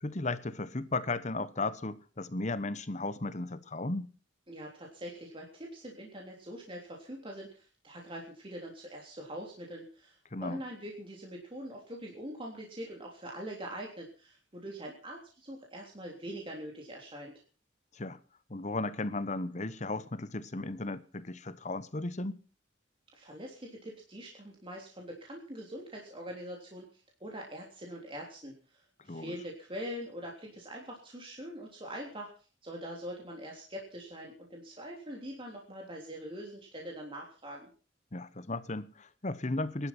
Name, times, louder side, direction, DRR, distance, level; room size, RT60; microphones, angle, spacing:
voice 1, 0.0-4.1 10.3-10.6 17.9-18.2 18.5-22.4 29.1-29.4 38.1-39.9, left 2 dB, 40° left, 1.1 m, -35 dB
voice 2, 4.5-17.3 23.1-32.3 32.6-37.7, equal, 30° right, 3.4 m, -43 dB
20.0 x 11.5 x 6.0 m
head